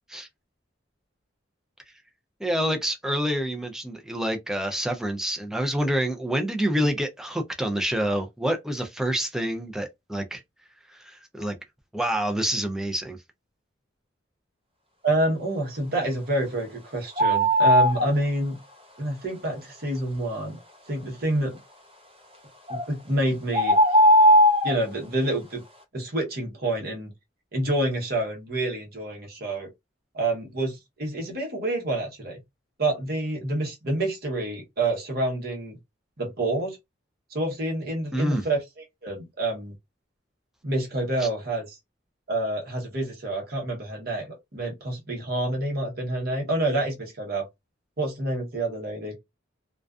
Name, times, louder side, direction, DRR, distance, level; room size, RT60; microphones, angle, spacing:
voice 1, 2.4-10.4 10.9-11.6 11.9-13.2 38.1-38.4 41.2-41.3, equal, 5° right, 0.4 m, -27 dB
voice 2, 15.0-18.6 19.0-20.6 20.9-21.5 22.7-23.8 24.6-25.6 25.9-27.1 27.5-29.7 30.1-32.4 32.8-35.8 36.2-36.8 37.3-38.6 39.0-39.7 40.6-41.8 42.3-47.5 48.0-49.2, right 1 dB, 55° right, 1.0 m, -28 dB
sound 1, 17.2-18.1 22.7-22.8 23.5-24.8, equal, 30° right, 0.8 m, -17 dB
2.4 x 2.3 x 2.3 m
head